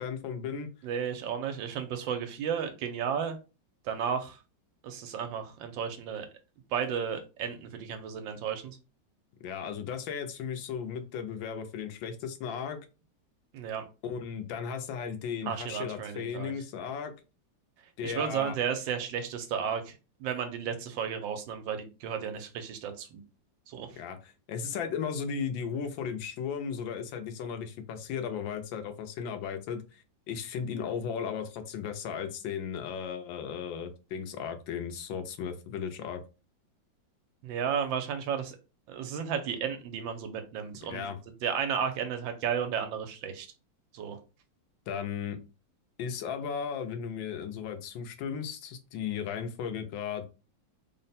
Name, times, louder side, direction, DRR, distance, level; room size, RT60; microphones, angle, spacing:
voice 1, 0.0-0.7 9.4-12.8 14.0-17.1 18.0-18.6 24.0-36.2 40.8-41.2 44.9-45.4 46.0-50.3, left 7 dB, 85° left, 7 dB, 1.4 m, -36 dB
voice 2, 0.8-3.4 3.8-4.4 4.8-6.3 6.7-8.8 13.5-13.8 15.5-16.5 18.0-23.2 23.7-23.9 37.4-38.6 38.9-43.5 43.9-44.2, right 7 dB, 80° right, 7 dB, 1.4 m, -33 dB
3.6 x 2.1 x 4.0 m, 0.31 s
omnidirectional pair, 2.0 m